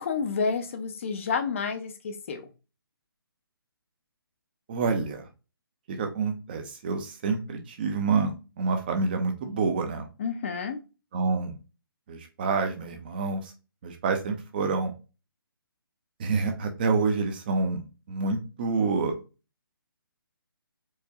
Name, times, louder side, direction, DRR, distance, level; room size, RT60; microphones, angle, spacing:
voice 1, 0.0-2.5 10.2-10.8, left 5 dB, 35° left, 7 dB, 0.5 m, -30 dB
voice 2, 4.7-5.3 5.9-10.1 11.1-11.6 12.1-13.5 13.8-14.9 16.2-19.2, right 4 dB, 25° right, 5 dB, 0.5 m, -28 dB
4.6 x 2.2 x 2.7 m, 0.30 s
hypercardioid pair, 160°, 13 cm